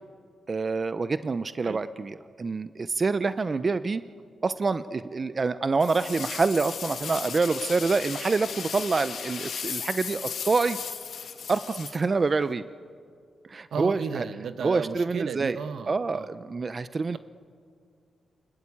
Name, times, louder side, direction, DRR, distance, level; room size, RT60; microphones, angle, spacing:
voice 1, 0.5-4.0 4.4-10.8 11.5-12.6 13.5-14.2 14.6-15.6 15.9-17.2, right 4 dB, 40° right, 12 dB, 0.7 m, -26 dB
sound 1, 5.8-12.5, left 7 dB, 70° left, 2.1 m, -36 dB
voice 2, 13.7-16.3, right 6 dB, 70° right, 11 dB, 1.1 m, -34 dB
29.5 x 20.0 x 8.7 m, 2.3 s
cardioid pair, 80°, 0 cm